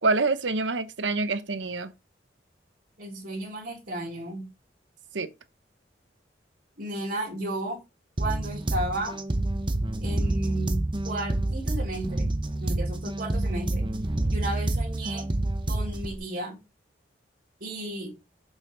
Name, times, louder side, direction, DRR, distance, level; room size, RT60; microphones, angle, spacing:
voice 1, 0.0-1.9 5.1-5.3, right 3 dB, 85° right, 0.9 m, -26 dB
voice 2, 3.0-4.4 6.8-7.8 8.2-9.2 10.0-12.3 12.6-13.8 14.3-15.3 15.7-16.6 17.6-18.1, right 1 dB, 55° right, 3.5 m, -33 dB
sound 1, 8.2-16.2, right 1 dB, 25° right, 0.9 m, -28 dB
7.2 x 5.7 x 4.0 m
head